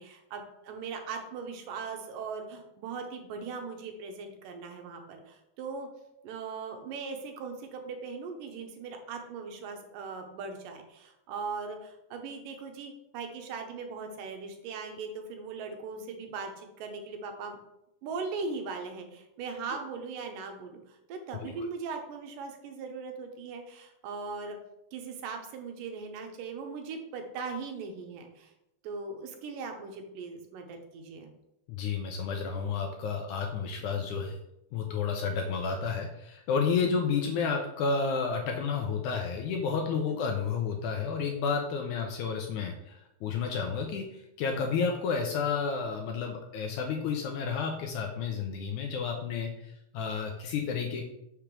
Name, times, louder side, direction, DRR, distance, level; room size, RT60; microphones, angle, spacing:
voice 1, 0.0-5.9 6.2-17.6 18.0-24.6 24.9-28.5 28.8-31.3 36.8-37.0 40.1-40.3, right 4 dB, 75° right, 4 dB, 2.4 m, -39 dB
voice 2, 31.7-34.4 34.7-51.0, left 5 dB, 80° left, 3 dB, 1.9 m, -31 dB
5.9 x 3.4 x 5.9 m, 0.85 s
omnidirectional pair, 3.9 m